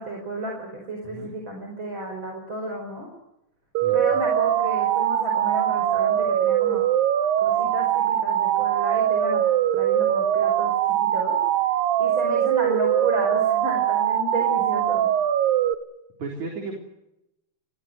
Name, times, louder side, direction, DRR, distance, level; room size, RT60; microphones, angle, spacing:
voice 1, 0.0-3.1 3.9-6.9 7.4-9.4 9.7-10.7 11.0-11.4 12.0-15.1, right 1 dB, 30° right, 2 dB, 5.6 m, -32 dB
voice 2, 3.8-4.2 16.2-16.8, right 4 dB, 50° right, 1 dB, 5.1 m, -34 dB
sound 1, 3.8-15.7, right 11 dB, 75° right, 2.9 m, -22 dB
30.0 x 20.0 x 7.9 m, 0.89 s
omnidirectional pair, 4.4 m